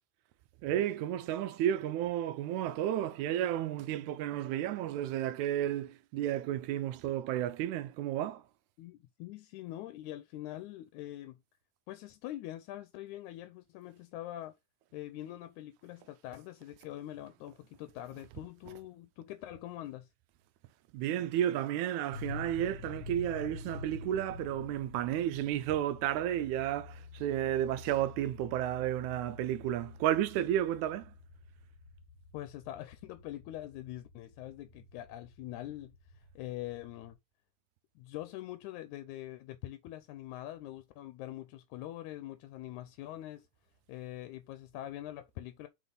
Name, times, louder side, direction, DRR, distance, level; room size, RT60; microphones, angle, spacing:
voice 1, 0.6-8.4 20.9-31.1, right 11 dB, 80° right, 2.0 m, -32 dB
voice 2, 8.8-11.4 11.9-14.5 14.9-20.1 32.3-37.2 38.0-43.5 43.9-45.7, left 14 dB, 85° left, 2.0 m, -44 dB
sound 1, 22.1-37.1, left 4 dB, 40° left, 0.9 m, -49 dB
6.5 x 3.9 x 3.9 m
omnidirectional pair, 3.4 m